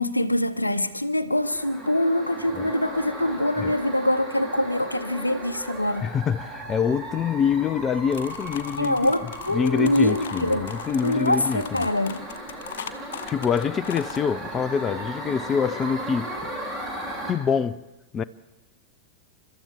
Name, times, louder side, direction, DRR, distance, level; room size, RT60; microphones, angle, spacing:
voice 1, 0.0-6.1 8.8-10.7 11.0-12.2, left 1 dB, 85° left, 0.7 m, -24 dB
sound 1, 1.4-17.3, right 1 dB, 10° right, 3.2 m, -36 dB
voice 2, 6.0-9.0 9.5-11.9 13.3-16.3 17.3-17.8 18.1-18.2, left 7 dB, 25° left, 0.4 m, -25 dB
sound 2, 8.1-14.2, left 7 dB, 60° left, 0.9 m, -39 dB
29.0 x 13.0 x 3.5 m
figure-of-eight pair, 90°, 0 cm